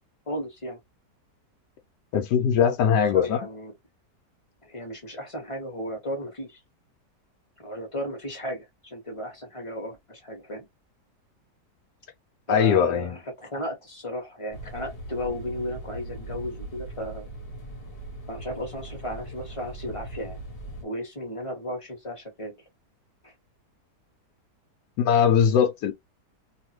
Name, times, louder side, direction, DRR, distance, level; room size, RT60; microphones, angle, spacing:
voice 1, 0.3-0.8 3.0-3.7 4.6-6.6 7.6-10.6 12.5-17.3 18.3-20.4 20.8-22.5 23.2-23.3, left 1 dB, 20° left, 1.2 m, -34 dB
voice 2, 2.1-3.5 12.5-13.2 25.0-25.9, left 7 dB, 80° left, 1.2 m, -21 dB
sound 1, 14.5-20.8, right 1 dB, 40° left, 1.2 m, -39 dB
2.9 x 2.4 x 3.0 m
omnidirectional pair, 1.8 m